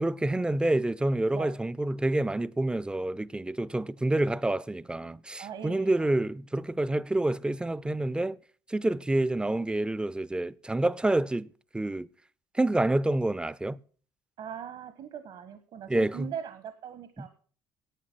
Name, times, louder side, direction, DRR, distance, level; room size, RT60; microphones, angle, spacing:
voice 1, 0.0-8.4 8.7-12.1 12.5-13.8 15.9-16.3 17.2-17.3, right 2 dB, 10° right, 0.5 m, -28 dB
voice 2, 5.4-6.1 14.4-17.3, right 8 dB, 60° right, 1.3 m, -40 dB
11.0 x 8.8 x 6.1 m
hypercardioid pair, 70°, 10 cm